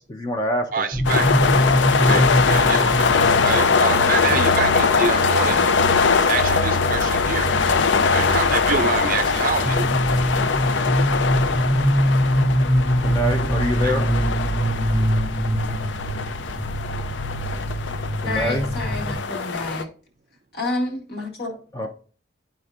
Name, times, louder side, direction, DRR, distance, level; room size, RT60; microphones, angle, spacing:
voice 1, 0.1-0.8 2.0-2.3 13.0-14.1 18.2-18.6 21.7-21.9, equal, 20° left, 2 dB, 0.6 m, -25 dB
voice 2, 0.7-1.3 2.1-3.1 3.4-5.6 6.3-7.5 8.1-9.9 13.8-14.0, right 5 dB, 45° right, 8 dB, 0.5 m, -26 dB
sound 1, 0.9-19.2, equal, ahead, 0.9 m, -24 dB
sound 2, 1.0-19.8, left 5 dB, 75° left, 0.5 m, -22 dB
voice 3, 18.3-19.9 20.5-21.6, left 2 dB, 55° left, 1 dB, 2.0 m, -29 dB
11.5 x 4.3 x 2.5 m, 0.41 s
head